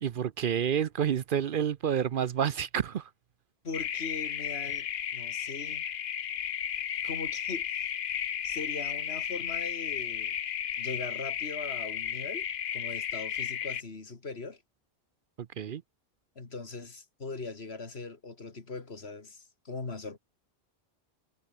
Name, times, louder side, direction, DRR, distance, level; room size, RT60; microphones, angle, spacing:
voice 1, 0.0-3.1 15.6-15.8, right 8 dB, 60° right, 0.8 m, -29 dB
voice 2, 3.6-4.9 5.1-5.8 7.0-7.8 8.4-10.3 10.8-12.5 12.7-14.6 16.4-20.2, left 3 dB, 85° left, 2.7 m, -40 dB
sound 1, 3.7-13.8, left 9 dB, 60° left, 0.8 m, -34 dB
omnidirectional pair, 1.0 m